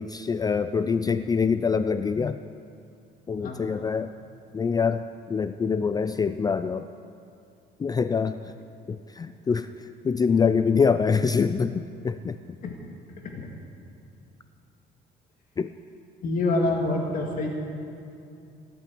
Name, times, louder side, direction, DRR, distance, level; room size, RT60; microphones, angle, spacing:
voice 1, 0.0-2.4 3.3-4.1 4.5-6.9 7.8-8.5 8.9-12.4 15.6-15.7, left 5 dB, 25° left, 11 dB, 0.4 m, -25 dB
voice 2, 16.2-17.5, left 2 dB, 55° left, 0 dB, 2.1 m, -26 dB
17.0 x 8.6 x 9.6 m, 2.5 s
cardioid pair, 110°, 17 cm